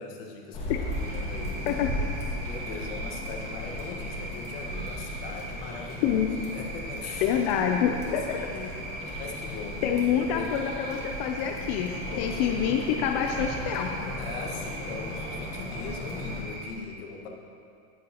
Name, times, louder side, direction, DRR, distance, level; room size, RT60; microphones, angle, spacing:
voice 1, 0.0-2.1 2.5-6.2 6.5-7.4 7.7-10.5 12.1-12.8 14.2-17.3, left 5 dB, 60° left, 1 dB, 1.5 m, -40 dB
sound 1, 0.5-16.4, left 1 dB, 20° left, 1.4 m, -37 dB
sound 2, 0.9-16.7, right 2 dB, 30° right, 2.2 m, -41 dB
voice 2, 6.0-6.4 7.2-8.2 9.8-14.1, left 8 dB, 40° left, 3 dB, 0.4 m, -27 dB
18.5 x 6.5 x 2.9 m, 2.4 s
supercardioid pair, 175°, 34 cm